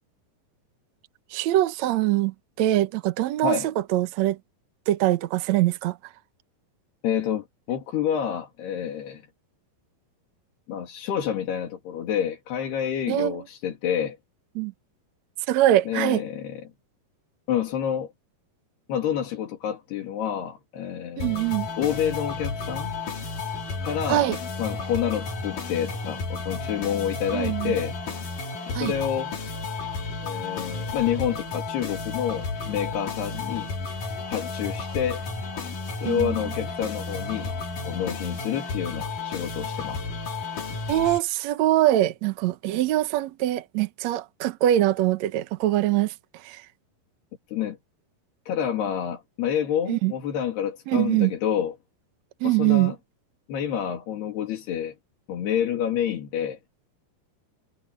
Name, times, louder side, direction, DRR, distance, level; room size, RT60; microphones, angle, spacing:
voice 1, 1.3-3.6 3.9-4.4 4.9-6.0 13.1-13.4 14.5-14.7 15.5-16.2 21.2-21.7 24.1-24.4 27.3-27.8 28.7-28.9 36.0-36.4 40.9-46.1 46.4-46.6 49.9-50.1 50.9-51.3 52.4-52.9, right 14 dB, 80° right, 1.6 m, -23 dB
voice 2, 7.0-9.2 10.7-14.2 15.9-16.6 17.5-18.1 18.9-21.4 21.8-22.9 23.8-24.3 24.6-28.0 28.7-29.3 30.2-33.7 34.3-35.2 36.0-37.6 37.8-40.0 47.5-47.8 48.5-51.8 52.4-53.0 53.5-55.0 55.3-56.6, left 9 dB, 80° left, 4.7 m, -28 dB
sound 1, 21.2-41.2, left 4 dB, 55° left, 5.1 m, -32 dB
omnidirectional pair, 4.6 m